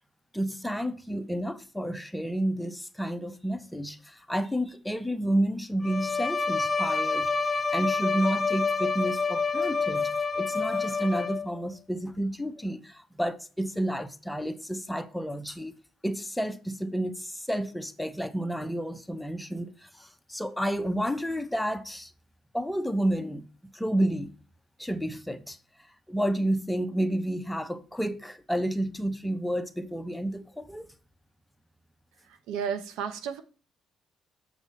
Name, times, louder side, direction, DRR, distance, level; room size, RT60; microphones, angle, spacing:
voice 1, 0.3-10.1 10.3-15.7 16.0-22.1 22.5-24.3 24.8-25.6 26.1-30.9, right 1 dB, 5° left, 0.9 m, -30 dB
Bowed string instrument, 5.8-11.6, left 4 dB, 30° left, 0.6 m, -28 dB
voice 2, 32.2-33.4, right 7 dB, 80° right, 0.8 m, -33 dB
7.3 x 5.2 x 4.2 m
supercardioid pair, 65°, 0 cm